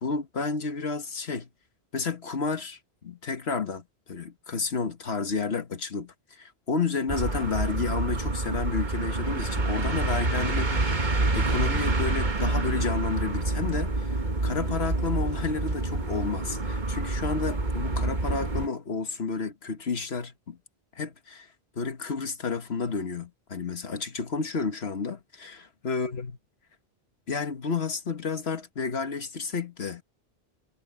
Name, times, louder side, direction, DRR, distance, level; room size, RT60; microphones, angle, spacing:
voice 1, 0.0-1.5 1.9-11.0 11.3-14.2 14.4-20.6 21.0-21.5 21.8-26.3 27.3-30.0, left 4 dB, 80° left, 1.7 m, -31 dB
sound 1, 7.1-18.7, right 2 dB, 50° right, 1.8 m, -27 dB
omnidirectional pair, 1.0 m